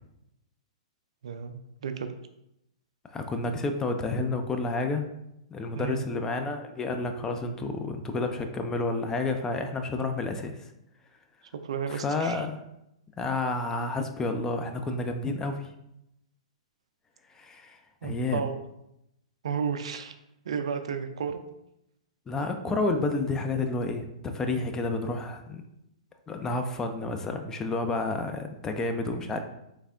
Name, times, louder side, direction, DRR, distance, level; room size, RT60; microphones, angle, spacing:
voice 1, 1.2-2.1 5.7-6.0 11.5-12.4 18.0-18.6 19.4-20.1 20.5-21.4, right 6 dB, 65° right, 8 dB, 0.3 m, -33 dB
voice 2, 3.1-5.0 5.5-10.6 11.9-12.6 13.2-15.7 17.3-18.4 22.3-25.6 26.3-29.4, left 3 dB, 15° left, 5 dB, 0.3 m, -30 dB
3.3 x 3.2 x 2.4 m, 0.83 s
figure-of-eight pair, 115°, 3 cm